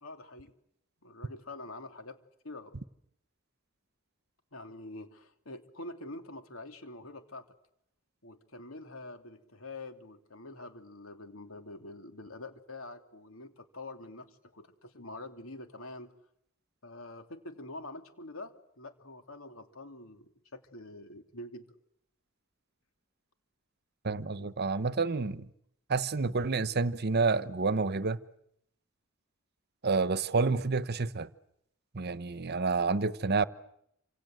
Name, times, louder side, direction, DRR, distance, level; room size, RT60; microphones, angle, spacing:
voice 1, 0.0-0.5 1.0-2.8 4.5-7.5 8.2-16.1 16.8-21.7 24.4-24.5, left 2 dB, 75° left, 3.1 m, -46 dB
voice 2, 24.0-25.5 25.9-28.2 29.8-31.3 31.9-33.4, right 4 dB, 50° right, 1.0 m, -29 dB
28.5 x 26.5 x 7.9 m
head